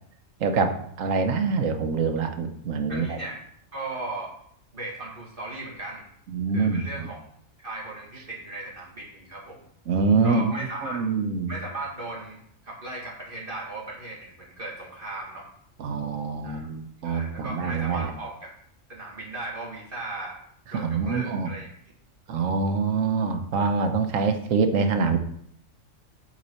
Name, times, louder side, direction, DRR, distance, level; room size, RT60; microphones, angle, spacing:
voice 1, 0.4-3.2 6.3-7.1 9.9-10.5 10.8-11.5 15.8-18.1 20.7-21.5 22.3-25.2, right 4 dB, 80° right, 7 dB, 1.3 m, -25 dB
voice 2, 2.9-3.4 3.7-4.3 4.7-6.0 6.5-7.2 7.6-9.6 10.2-11.0 11.5-12.4 12.6-15.4 16.4-16.7 17.0-18.5 18.9-20.4 20.7-21.7, right 2 dB, 45° right, -4 dB, 1.9 m, -37 dB
7.9 x 4.2 x 6.8 m, 0.68 s
omnidirectional pair, 1.3 m